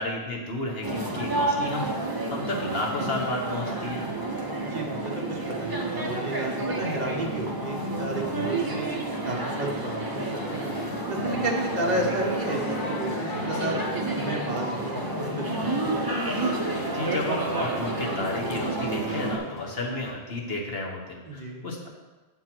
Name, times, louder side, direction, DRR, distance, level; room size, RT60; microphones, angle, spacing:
voice 1, 0.0-4.0 16.9-21.9, left 2 dB, 70° left, -1 dB, 1.5 m, -32 dB
sound 1, 0.8-19.4, right 2 dB, 20° right, 0.9 m, -30 dB
voice 2, 4.5-8.9 9.2-10.7 11.1-13.7 14.2-16.0 21.3-21.6, right 1 dB, 45° right, 0 dB, 1.3 m, -32 dB
sound 2, 9.5-20.1, left 3 dB, 55° left, 1.3 m, -37 dB
7.5 x 4.6 x 6.0 m, 1.2 s
omnidirectional pair, 1.0 m